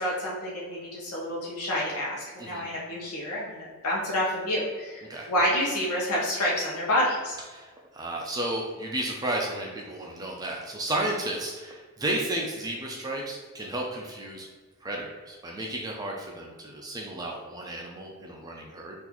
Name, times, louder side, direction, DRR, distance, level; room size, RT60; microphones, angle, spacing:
voice 1, 0.0-7.4, left 1 dB, 80° left, -5 dB, 0.8 m, -28 dB
voice 2, 7.5-14.5 14.8-18.9, right 1 dB, 15° right, -1 dB, 0.4 m, -33 dB
3.8 x 2.5 x 2.9 m, 1.4 s
head